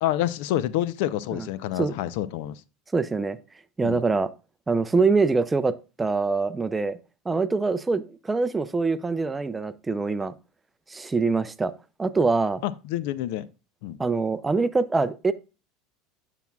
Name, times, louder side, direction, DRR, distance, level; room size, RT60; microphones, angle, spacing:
voice 1, 0.0-2.6 3.8-4.0 12.6-13.5 13.8-14.0, left 13 dB, 70° left, 0.4 m, -28 dB
voice 2, 2.9-3.4 3.8-4.3 4.7-7.0 7.3-10.3 10.9-11.7 12.0-12.6 14.0-15.3, right 4 dB, 15° right, 0.5 m, -24 dB
9.3 x 5.9 x 2.3 m
supercardioid pair, 110°, 0 cm